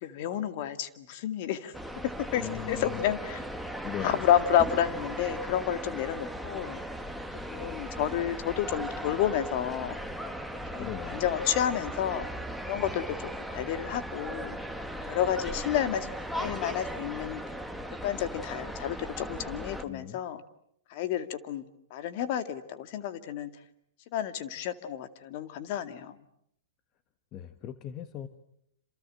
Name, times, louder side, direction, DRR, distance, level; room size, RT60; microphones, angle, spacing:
voice 1, 0.0-1.7 2.0-3.4 4.0-6.8 7.5-10.0 10.7-12.3 12.7-13.2 13.5-14.6 15.1-16.1 16.3-17.4 18.0-20.4 20.9-21.6 21.9-23.5 24.1-26.2, left 10 dB, 55° left, 10 dB, 2.2 m, -30 dB
sound 1, 1.7-19.8, equal, ahead, 1.7 m, -38 dB
voice 2, 2.4-3.2 3.8-4.3 10.8-11.3 12.9-13.0 19.8-20.2 27.3-28.3, left 11 dB, 35° left, 10 dB, 1.4 m, -39 dB
28.0 x 27.5 x 7.7 m, 0.72 s
hypercardioid pair, 125°, 0 cm